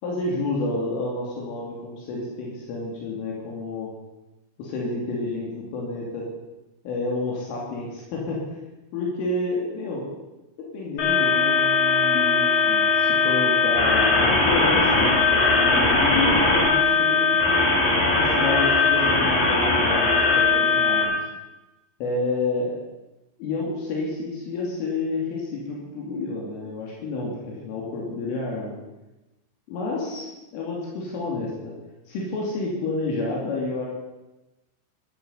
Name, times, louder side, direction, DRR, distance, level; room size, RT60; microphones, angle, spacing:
voice 1, 0.0-3.9 4.6-6.3 6.9-8.4 8.9-10.1 10.6-17.4 17.9-21.2 22.0-22.8 23.4-28.7 29.7-31.7 32.1-33.9, left 3 dB, 75° left, -3 dB, 5.2 m, -29 dB
sound 1, 11.0-21.0, left 4 dB, 45° left, 5.2 m, -20 dB
15.0 x 14.0 x 5.7 m, 1.0 s
omnidirectional pair, 5.8 m